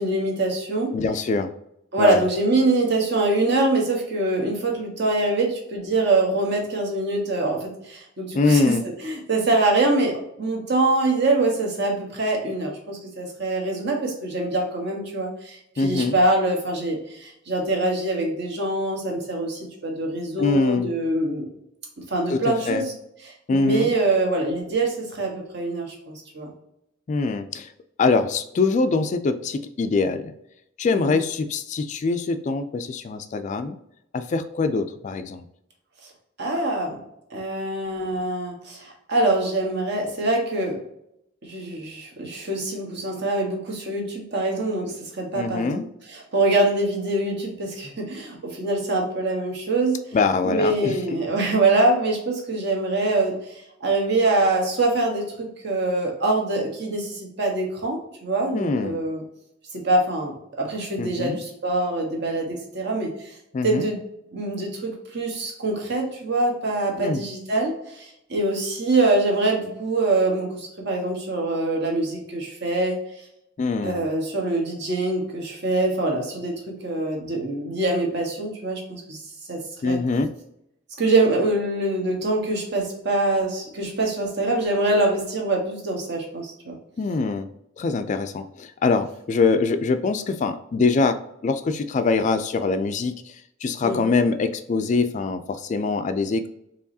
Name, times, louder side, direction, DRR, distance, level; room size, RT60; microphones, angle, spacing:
voice 1, 0.0-1.0 1.9-8.7 9.0-21.5 22.1-22.9 23.2-26.5 30.9-31.1 36.4-37.0 37.3-40.8 41.4-45.8 46.1-50.0 50.4-53.3 53.8-59.2 59.7-63.1 63.6-64.0 64.3-73.0 73.8-79.2 79.5-80.0 81.0-86.8 93.8-94.0, right 2 dB, 60° right, 0 dB, 1.1 m, -24 dB
voice 2, 0.9-1.5 2.0-2.2 8.3-8.8 15.8-16.2 20.4-20.9 22.3-22.8 23.5-23.9 27.1-27.7 28.0-30.3 30.8-33.8 34.1-35.5 45.3-45.8 50.1-51.2 58.5-59.0 61.0-61.4 63.5-63.9 67.0-67.2 73.6-74.0 79.8-80.3 87.0-87.5 87.8-93.3 93.6-96.5, left 4 dB, 40° left, 9 dB, 0.3 m, -23 dB
4.7 x 3.0 x 2.7 m, 0.78 s
head